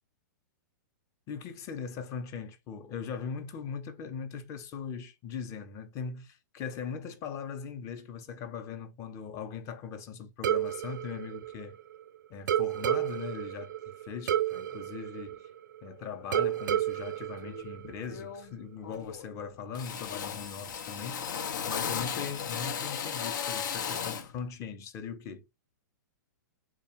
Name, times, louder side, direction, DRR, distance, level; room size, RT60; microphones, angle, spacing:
voice 1, 1.3-11.8 12.3-15.4 15.8-21.4 21.7-25.4, left 6 dB, 30° left, 0.7 m, -40 dB
sound 1, 10.4-12.0 12.5-15.9 16.3-18.3, right 11 dB, 75° right, 0.4 m, -31 dB
Drill, 17.4-17.7 18.1-18.6 18.8-19.4 19.7-24.3, left 7 dB, 70° left, 0.6 m, -35 dB
3.4 x 2.3 x 4.3 m
hypercardioid pair, 135°, 11 cm